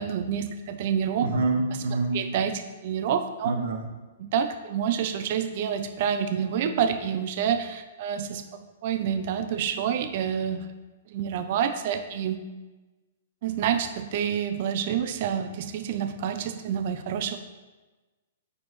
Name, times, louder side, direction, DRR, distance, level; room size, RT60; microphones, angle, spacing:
voice 1, 0.0-1.3 2.1-3.5 4.2-10.7 11.1-12.4 13.4-17.4, right 8 dB, 45° right, 8 dB, 0.5 m, -28 dB
voice 2, 1.2-2.2 3.4-3.9, right 3 dB, 75° right, 2 dB, 1.5 m, -26 dB
8.6 x 6.3 x 3.1 m, 1.2 s
hypercardioid pair, 160°, 0 cm